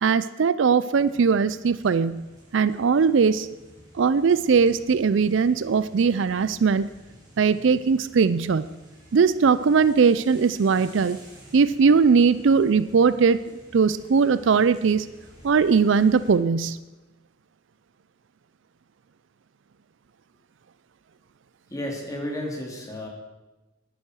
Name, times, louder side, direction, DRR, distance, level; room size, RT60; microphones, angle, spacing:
voice 1, 0.0-2.3 2.5-3.5 3.9-6.9 7.4-8.6 9.1-11.2 11.5-13.4 13.7-15.1 15.4-16.8, right 5 dB, 60° right, 15 dB, 0.4 m, -20 dB
sound 1, 0.9-16.3, equal, 20° right, 4.7 m, -51 dB
voice 2, 21.7-23.1, left 1 dB, 15° left, 0 dB, 2.4 m, -32 dB
11.5 x 10.5 x 6.3 m, 1.1 s
head